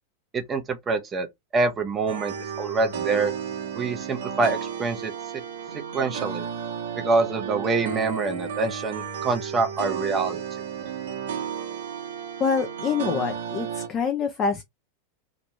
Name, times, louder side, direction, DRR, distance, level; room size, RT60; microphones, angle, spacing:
voice 1, 0.3-1.3 1.5-3.3 3.8-5.1 5.9-6.5 7.0-10.4, right 3 dB, 20° right, 0.6 m, -25 dB
sound 1, 2.1-13.9, right 7 dB, 55° right, 0.9 m, -33 dB
voice 2, 12.4-14.6, left 6 dB, 25° left, 0.6 m, -26 dB
2.9 x 2.5 x 3.1 m
figure-of-eight pair, 90°, 0 cm